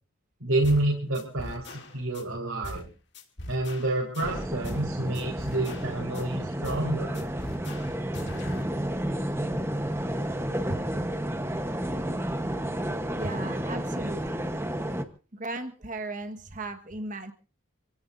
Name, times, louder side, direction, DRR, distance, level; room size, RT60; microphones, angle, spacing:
voice 1, 0.4-2.9 3.5-7.3, right 2 dB, 80° right, -2 dB, 4.3 m, -28 dB
sound 1, 0.6-0.9 1.1-2.2 2.6-2.9 3.1-4.9 5.1-6.2 6.6-6.9 7.1-8.6, left 1 dB, 55° left, 2.6 m, -41 dB
sound 2, 4.2-15.0, right 1 dB, 10° right, 1.1 m, -31 dB
voice 2, 10.7-11.0 13.2-14.6 15.3-17.3, right 2 dB, 40° right, 7 dB, 1.5 m, -36 dB
28.0 x 17.0 x 2.7 m, 0.35 s
head